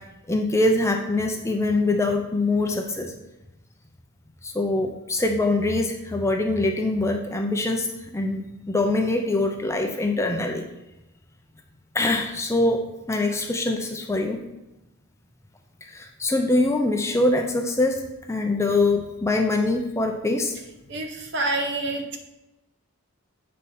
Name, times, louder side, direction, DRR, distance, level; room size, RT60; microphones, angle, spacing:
voice 1, 0.3-3.1 4.4-7.9 8.1-10.6 11.9-12.8 13.1-14.4 15.9-18.0 18.3-20.5, left 2 dB, 10° left, 3 dB, 0.5 m, -23 dB
voice 2, 20.8-22.2, right 2 dB, 50° right, 4 dB, 0.9 m, -27 dB
8.0 x 4.3 x 5.4 m, 0.98 s
head